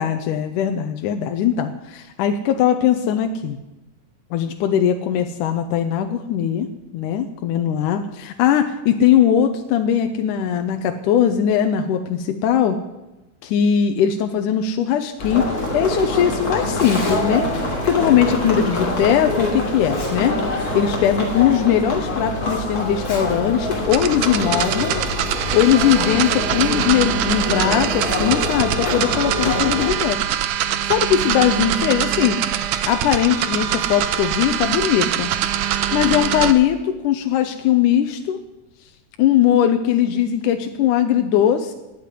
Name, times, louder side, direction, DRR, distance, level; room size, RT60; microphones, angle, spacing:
voice 1, 0.0-3.6 4.3-6.7 6.9-12.8 13.4-17.5 17.9-20.4 20.7-25.0 25.5-30.2 30.8-32.4 32.9-35.3 35.9-38.4 39.2-41.7, left 9 dB, 85° left, 6 dB, 2.3 m, -20 dB
sound 1, 15.2-29.9, left 1 dB, 30° left, 3.0 m, -25 dB
Tearing, 16.7-17.6 19.1-19.2 19.7-20.4 20.8-20.9 21.6-21.7 22.9-23.2 23.6-23.7 24.5-24.8, left 2 dB, 60° left, 5.2 m, -35 dB
sound 2, 23.9-36.5, right 10 dB, 75° right, 2.3 m, -23 dB
18.5 x 6.8 x 9.7 m, 1.0 s
omnidirectional pair, 3.7 m